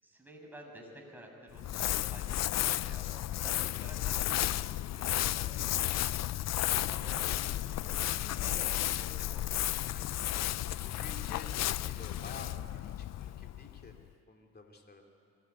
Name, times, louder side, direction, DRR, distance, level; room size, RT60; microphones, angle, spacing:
voice 1, 0.0-5.9 6.9-8.1 8.4-9.5, equal, 5° right, 0 dB, 6.2 m, -51 dB
Crumpling crinkling, 1.5-14.0, left 13 dB, 60° left, 0.5 m, -33 dB
voice 2, 9.9-10.2 10.7-13.9 14.3-15.0, left 3 dB, 30° left, 2 dB, 3.0 m, -51 dB
24.0 x 18.5 x 9.5 m, 2.6 s
cardioid pair, 90°, 30 cm